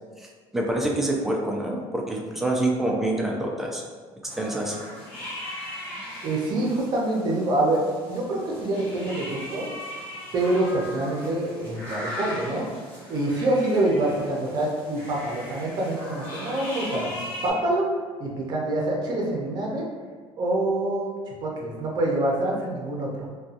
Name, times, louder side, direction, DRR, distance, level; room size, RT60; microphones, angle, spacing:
voice 1, 0.5-3.8 4.2-4.8, right 1 dB, 5° right, -1 dB, 0.3 m, -26 dB
sound 1, 4.3-17.5, left 1 dB, 20° left, 0.8 m, -38 dB
voice 2, 6.2-7.8 8.1-9.7 10.3-12.7 13.1-17.1 17.4-17.9 18.2-19.8 20.4-23.3, right 1 dB, 45° right, -2 dB, 0.6 m, -26 dB
2.6 x 2.2 x 2.5 m, 1.5 s
cardioid pair, 140°, 10 cm